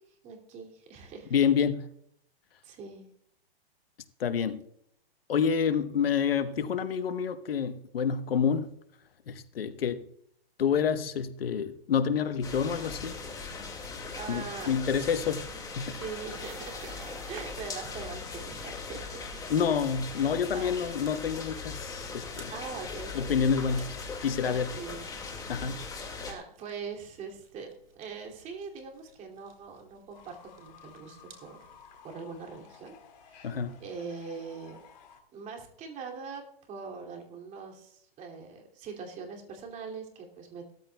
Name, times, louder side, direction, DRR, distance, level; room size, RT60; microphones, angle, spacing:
voice 1, 0.2-1.4 2.6-3.1 14.1-15.2 16.0-17.0 17.3-19.2 20.2-20.7 22.5-23.3 24.4-25.2 25.6-25.8 26.2-31.7 32.0-32.9 33.2-34.8 35.3-40.7, right 5 dB, 25° right, 2.5 m, -42 dB
voice 2, 1.3-1.8 4.2-4.6 5.3-8.7 9.3-10.1 10.6-13.1 13.4-13.5 14.3-15.4 15.8-15.9 19.5-22.5 23.1-24.7 25.5-25.8 33.4-33.8, left 7 dB, 75° left, 1.1 m, -28 dB
sound 1, 12.4-26.3, left 4 dB, 10° left, 2.0 m, -40 dB
sound 2, 16.1-32.1, right 4 dB, 75° right, 3.5 m, -55 dB
Fowl / Bird, 30.1-35.2, left 7 dB, 45° left, 2.4 m, -54 dB
17.5 x 13.5 x 2.3 m
hypercardioid pair, 135°, 30 cm